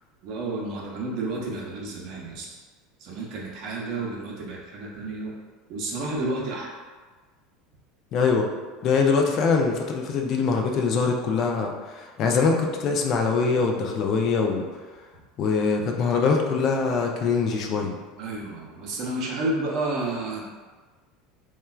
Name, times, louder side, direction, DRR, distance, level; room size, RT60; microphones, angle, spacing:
voice 1, 0.2-2.5 3.0-5.3 5.7-6.7 18.2-20.4, right 2 dB, 55° right, -2 dB, 0.7 m, -31 dB
voice 2, 8.1-8.5 8.8-14.6 15.4-18.0, left 5 dB, 50° left, 2 dB, 0.4 m, -23 dB
3.1 x 2.2 x 2.3 m, 1.4 s
supercardioid pair, 100°, 0 cm